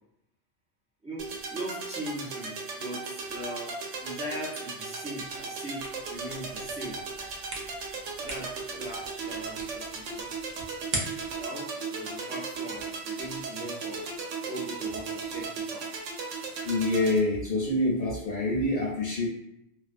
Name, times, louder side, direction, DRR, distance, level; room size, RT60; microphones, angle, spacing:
sound 1, 1.2-17.2, right 4 dB, 90° right, 0.9 m, -36 dB
voice 1, 1.5-3.8 4.0-7.0 8.2-10.3 11.3-14.0 14.5-15.9, right 1 dB, 10° right, -7 dB, 0.4 m, -40 dB
sound 2, 5.8-11.5, right 2 dB, 60° right, 0.8 m, -41 dB
voice 2, 16.6-19.3, left 2 dB, 60° left, -4 dB, 0.7 m, -26 dB
2.4 x 2.2 x 2.5 m, 0.81 s
omnidirectional pair, 1.2 m